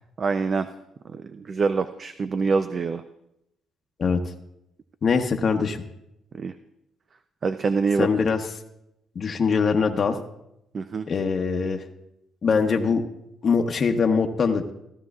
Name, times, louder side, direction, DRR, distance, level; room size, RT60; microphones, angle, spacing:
voice 1, 0.2-0.7 1.1-3.0 6.3-6.5 7.4-8.1 10.7-11.1, right 4 dB, 45° right, 10 dB, 0.5 m, -25 dB
voice 2, 5.0-5.8 8.0-8.4 9.1-10.2 11.1-11.8 12.4-13.0 13.4-14.7, left 5 dB, 45° left, 3 dB, 0.9 m, -22 dB
16.0 x 12.5 x 2.4 m, 0.83 s
cardioid pair, 90°, 0 cm